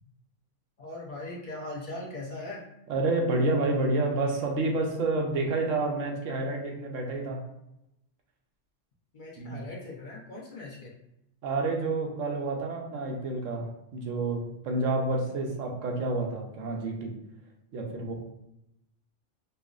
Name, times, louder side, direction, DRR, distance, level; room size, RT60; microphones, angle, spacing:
voice 1, 0.8-2.7 9.1-10.9, left 2 dB, 50° left, -4 dB, 0.7 m, -40 dB
voice 2, 2.9-7.4 9.4-9.6 11.4-17.1 17.7-18.1, right 2 dB, 85° right, 1 dB, 1.1 m, -29 dB
5.3 x 2.0 x 2.4 m, 0.83 s
omnidirectional pair, 1.3 m